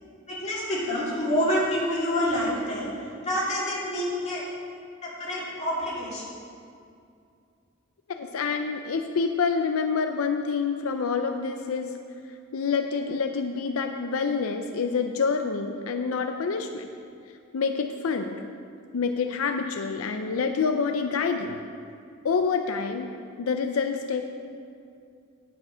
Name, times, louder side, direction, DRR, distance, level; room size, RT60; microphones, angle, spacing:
voice 1, 0.3-2.9 3.2-4.4 5.0-6.3, equal, 35° left, -7 dB, 2.8 m, -27 dB
voice 2, 8.2-11.9 12.5-16.9 17.5-18.4 18.9-21.6 22.2-23.1 23.4-24.3, left 5 dB, 85° left, 6 dB, 0.5 m, -27 dB
9.8 x 7.4 x 5.6 m, 2.4 s
head